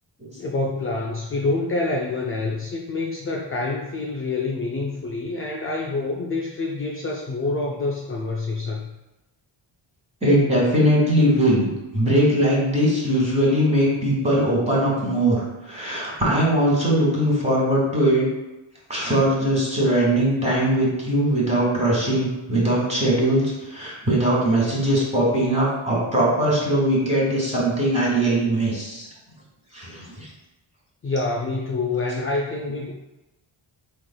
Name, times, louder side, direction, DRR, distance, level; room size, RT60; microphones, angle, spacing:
voice 1, 0.4-8.9 31.0-32.9, left 3 dB, 30° left, 0 dB, 0.4 m, -27 dB
voice 2, 10.2-18.3 18.9-29.1 29.7-30.3, right 1 dB, 15° right, -5 dB, 1.5 m, -20 dB
4.1 x 3.2 x 2.3 m, 1.0 s
cardioid pair, 85°, 48 cm